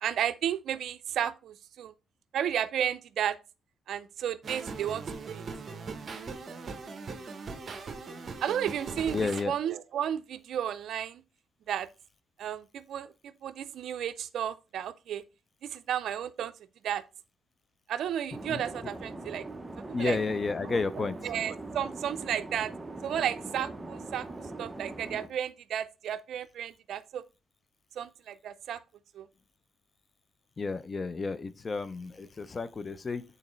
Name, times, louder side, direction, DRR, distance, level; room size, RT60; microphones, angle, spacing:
voice 1, 0.0-1.9 2.3-3.4 3.9-5.5 8.4-9.2 9.4-11.2 11.7-11.9 12.4-15.2 15.6-16.5 16.8-17.0 17.9-19.4 19.9-20.2 20.7-22.7 23.0-24.3 24.6-27.2 28.0-28.8 29.1-29.3, right 9 dB, 70° right, 0.4 m, -33 dB
sound 1, 4.4-9.4, right 4 dB, 45° right, 0.9 m, -40 dB
voice 2, 9.1-9.5 18.5-18.6 19.9-21.2 30.6-33.2, left 4 dB, 35° left, 0.5 m, -31 dB
sound 2, 18.3-25.3, right 2 dB, 15° right, 0.7 m, -41 dB
8.3 x 4.0 x 3.1 m
cardioid pair, 90°, 0 cm